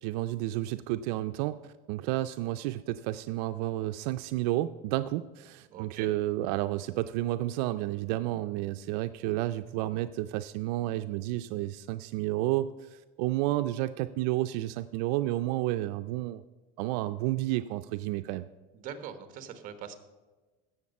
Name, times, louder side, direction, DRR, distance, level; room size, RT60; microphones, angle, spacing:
voice 1, 0.0-16.4 16.8-18.5, right 15 dB, 85° right, 10 dB, 0.5 m, -31 dB
voice 2, 5.7-6.1 18.7-19.9, right 8 dB, 45° right, 9 dB, 1.3 m, -42 dB
16.0 x 6.5 x 5.4 m, 1.2 s
cardioid pair, 160°, 20 cm